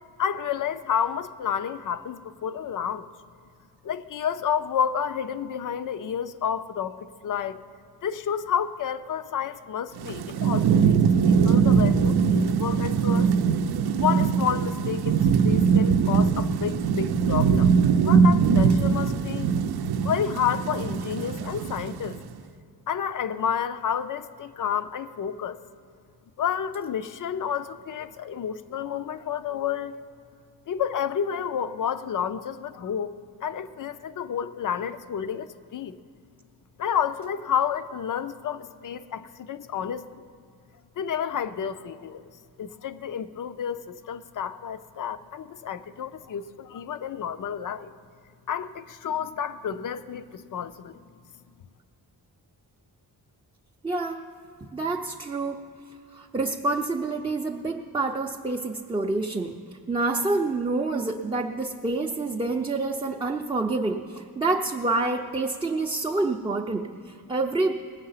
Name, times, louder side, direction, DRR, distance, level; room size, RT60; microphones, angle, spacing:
voice 1, 0.2-3.1 3.8-7.6 8.0-13.3 14.0-17.7 18.0-19.5 20.0-22.2 22.9-25.6 26.4-30.0 30.7-33.1 33.4-36.0 36.8-40.2 41.0-42.2 42.6-47.9 48.5-51.0, left 8 dB, 55° left, 0.5 m, -30 dB
Thunderstorm / Rain, 10.0-22.2, right 6 dB, 75° right, 0.6 m, -22 dB
voice 2, 53.8-54.2 54.6-55.6 56.1-59.6 59.9-67.7, right 3 dB, 15° right, 0.5 m, -27 dB
19.5 x 7.6 x 5.6 m
wide cardioid pair, 140°, 39 cm